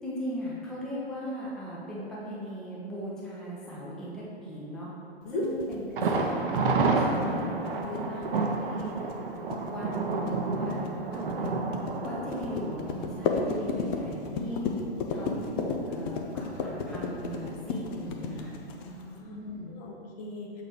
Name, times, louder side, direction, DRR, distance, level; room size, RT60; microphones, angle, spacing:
voice 1, 0.0-4.9 5.3-8.9 9.7-9.9 10.5-10.8 11.1-11.7 12.0-14.7 15.1-18.5 19.3-19.7, equal, ahead, -7 dB, 0.9 m, -38 dB
sound 1, 5.4-19.2, left 4 dB, 25° left, 0.4 m, -34 dB
Thunder, 6.0-13.7 14.0-14.1 14.5-14.6, right 3 dB, 55° right, 0.8 m, -29 dB
voice 2, 7.6-8.0 8.3-8.6 18.8-19.4 19.7-20.6, left 2 dB, 40° left, -1 dB, 1.0 m, -39 dB
6.7 x 4.2 x 4.5 m, 2.7 s
figure-of-eight pair, 115°, 32 cm